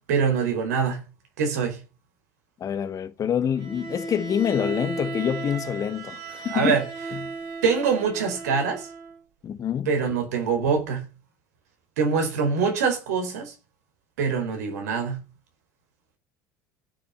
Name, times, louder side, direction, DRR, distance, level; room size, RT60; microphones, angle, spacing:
voice 1, 0.1-1.0 1.4-1.8 6.5-6.8 7.6-8.9 9.9-11.1 12.0-13.5 14.2-15.2, right 5 dB, 85° right, 4.5 m, -24 dB
voice 2, 2.6-6.8 7.1-7.2 9.4-9.9, left 8 dB, 40° left, 1.5 m, -26 dB
Bowed string instrument, 3.6-9.2, right 4 dB, 65° right, 6.8 m, -36 dB
16.0 x 6.9 x 5.7 m
hypercardioid pair, 80°, 9 cm